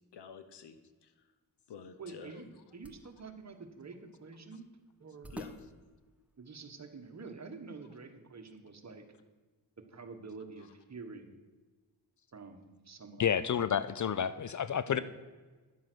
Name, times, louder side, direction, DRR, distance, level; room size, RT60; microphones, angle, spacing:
voice 1, 0.1-1.1 1.7-2.5 5.3-5.5 14.9-15.0, left 7 dB, 90° left, 10 dB, 1.0 m, -48 dB
sound 1, 1.7-7.1, equal, 5° right, 1.0 m, -53 dB
voice 2, 2.0-2.5 2.7-4.7 5.0-5.3 6.4-9.0 9.9-11.4 12.3-13.5 14.0-14.6, right 4 dB, 40° right, 6 dB, 1.3 m, -48 dB
voice 3, 13.2-15.0, left 8 dB, 45° left, 15 dB, 0.5 m, -30 dB
10.5 x 7.5 x 6.1 m, 1.3 s
cardioid pair, 65°, 41 cm